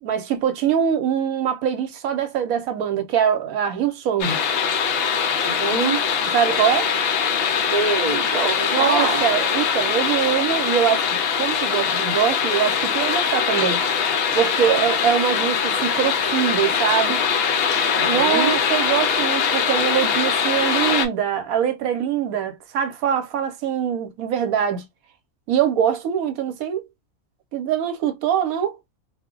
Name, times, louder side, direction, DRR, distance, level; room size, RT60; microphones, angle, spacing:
voice 1, 0.0-4.4 6.3-6.9 8.7-13.8 14.3-17.2 18.0-24.9 25.5-26.9 27.5-28.8, right 9 dB, 80° right, 1.1 m, -23 dB
sound 1, 4.2-21.1, left 6 dB, 60° left, 0.6 m, -22 dB
voice 2, 5.4-6.1 7.7-9.3 14.6-14.9 17.9-18.6, right 4 dB, 35° right, 0.7 m, -25 dB
2.4 x 2.1 x 3.6 m
omnidirectional pair, 1.5 m